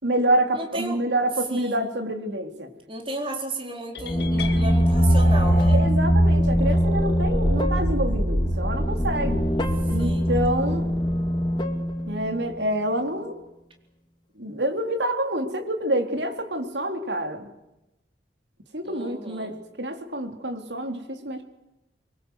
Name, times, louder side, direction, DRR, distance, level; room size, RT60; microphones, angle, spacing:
voice 1, 0.0-2.7 5.7-9.5 9.9-10.9 12.1-13.3 14.4-17.5 18.7-21.4, right 1 dB, 85° right, 4 dB, 3.6 m, -27 dB
voice 2, 0.5-1.0 1.5-1.9 2.9-5.8 10.0-10.3 18.8-19.6, right 1 dB, 30° right, 2 dB, 4.4 m, -34 dB
sound 1, 3.9-5.9, left 3 dB, 60° left, 2.4 m, -36 dB
sound 2, 4.0-12.6, equal, 25° left, 2.2 m, -22 dB
24.0 x 24.0 x 8.1 m, 0.93 s
head